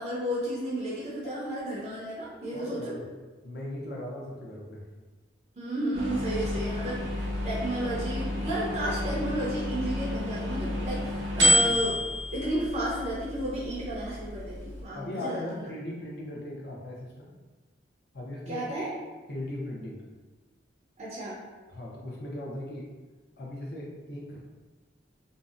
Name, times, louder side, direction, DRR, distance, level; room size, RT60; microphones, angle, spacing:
voice 1, 0.0-3.0 5.6-12.0 12.3-15.4 18.5-18.9 21.0-21.4, right 1 dB, 35° right, -6 dB, 0.5 m, -32 dB
voice 2, 2.5-3.0 3.4-4.9 14.9-17.3 18.1-18.6 19.3-20.0 21.7-22.9 23.4-24.5, left 1 dB, 55° left, -3 dB, 0.5 m, -38 dB
sound 1, 5.9-14.8, left 1 dB, 85° right, 0.8 m, -30 dB
2.6 x 2.0 x 2.4 m, 1.3 s
head